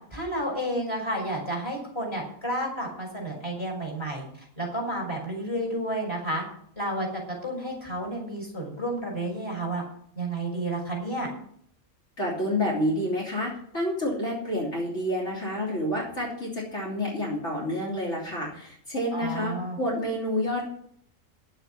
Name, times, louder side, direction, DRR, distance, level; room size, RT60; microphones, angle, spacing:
voice 1, 0.1-6.4 6.8-7.1 7.4-9.8 10.2-11.3 19.1-19.8, right 1 dB, 20° left, -2 dB, 5.7 m, -31 dB
voice 2, 12.2-20.7, left 1 dB, 60° left, -4 dB, 3.7 m, -29 dB
11.0 x 9.0 x 7.6 m, 0.64 s
omnidirectional pair, 1.4 m